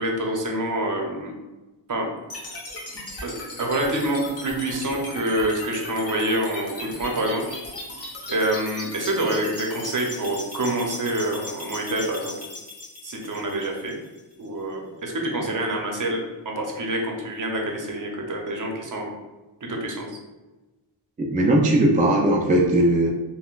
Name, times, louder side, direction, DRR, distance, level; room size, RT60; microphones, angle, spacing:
voice 1, 0.0-1.3 1.9-2.1 3.2-3.3 3.6-7.4 8.3-12.4 13.0-13.9 14.4-19.1 19.7-20.1, right 1 dB, 40° right, 0 dB, 0.7 m, -26 dB
sound 1, 2.3-14.3, left 2 dB, 30° left, 1.0 m, -37 dB
voice 2, 21.2-23.1, right 1 dB, 20° right, -2 dB, 0.3 m, -19 dB
3.6 x 2.2 x 2.3 m, 1.1 s
cardioid pair, 60°, 48 cm